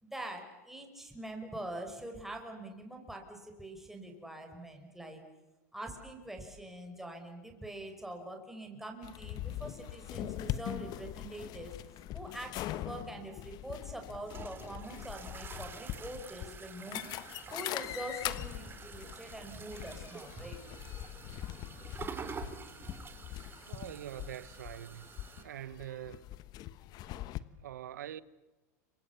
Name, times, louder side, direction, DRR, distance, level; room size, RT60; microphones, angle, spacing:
voice 1, 0.0-5.2 5.7-11.8 12.1-17.1 17.5-20.6, right 1 dB, 5° right, 5.5 m, -44 dB
sound 1, 9.0-27.4, left 14 dB, 45° left, 1.2 m, -42 dB
sound 2, 13.7-25.4, right 5 dB, 25° right, 3.3 m, -48 dB
voice 2, 23.6-25.1 25.4-26.3 27.5-28.2, right 11 dB, 80° right, 1.1 m, -44 dB
29.5 x 24.5 x 7.1 m
hypercardioid pair, 100°, 9 cm